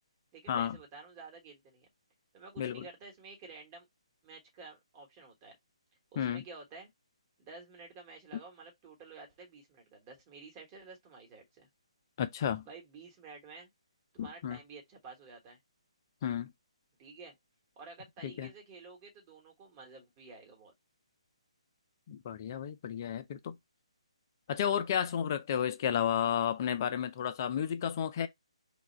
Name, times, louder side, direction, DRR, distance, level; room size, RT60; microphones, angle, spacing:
voice 1, 0.3-1.9 2.3-3.9 4.2-5.6 6.1-6.9 7.4-11.7 12.7-13.7 14.1-15.6 17.0-17.3 17.8-20.7, right 4 dB, 25° right, 1.2 m, -51 dB
voice 2, 12.2-12.6 14.2-14.6 16.2-16.5 18.2-18.5 22.1-23.6 24.5-28.3, left 9 dB, 35° left, 0.4 m, -32 dB
2.9 x 2.3 x 4.2 m
figure-of-eight pair, 140°, 3 cm